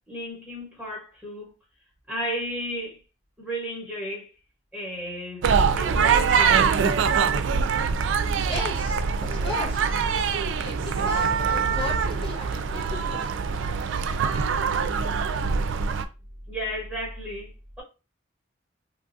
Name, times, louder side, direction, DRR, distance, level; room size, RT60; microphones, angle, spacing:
voice 1, 0.1-1.5 2.1-3.0 3.4-4.3 4.7-5.5 5.7-6.6 16.5-17.5, equal, ahead, 1.1 m, -33 dB
sound 1, 5.4-16.0, right 6 dB, 85° right, 0.3 m, -24 dB
voice 2, 8.4-10.0 10.6-13.4, left 2 dB, 25° left, 1.4 m, -35 dB
3.1 x 2.4 x 2.6 m
head